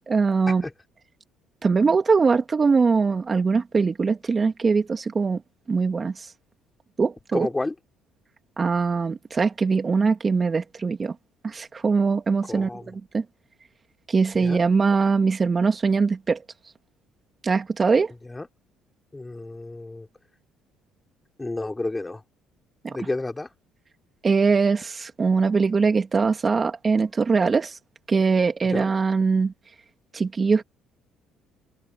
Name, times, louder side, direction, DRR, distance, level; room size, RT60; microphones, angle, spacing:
voice 1, 0.1-0.6 1.6-5.4 5.7-6.3 7.0-7.5 8.6-11.1 11.4-13.2 14.1-16.4 17.4-18.1 22.8-23.0 24.2-27.8 28.1-29.5 30.1-30.6, right 4 dB, 35° right, 2.5 m, -22 dB
voice 2, 7.3-7.7 12.5-12.9 14.4-14.6 18.3-18.5 19.1-20.1 21.4-22.2 22.9-23.5 28.7-28.9, left 2 dB, 15° left, 5.7 m, -30 dB
supercardioid pair, 75°, 0 cm